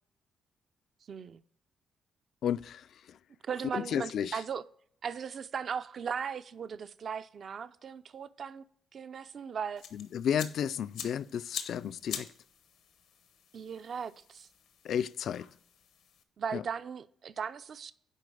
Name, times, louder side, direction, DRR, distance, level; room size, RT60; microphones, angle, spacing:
voice 1, 1.1-1.4 3.4-4.6 5.0-8.6 8.9-9.8 13.5-14.5 16.4-17.9, right 7 dB, 50° right, 0.4 m, -37 dB
voice 2, 2.4-3.2 3.7-4.4 9.9-12.3 14.8-15.5 16.5-16.6, left 8 dB, 65° left, 0.3 m, -33 dB
sound 1, 9.8-16.2, left 8 dB, 85° left, 1.0 m, -46 dB
9.9 x 3.8 x 4.8 m
cardioid pair, 90°, 0 cm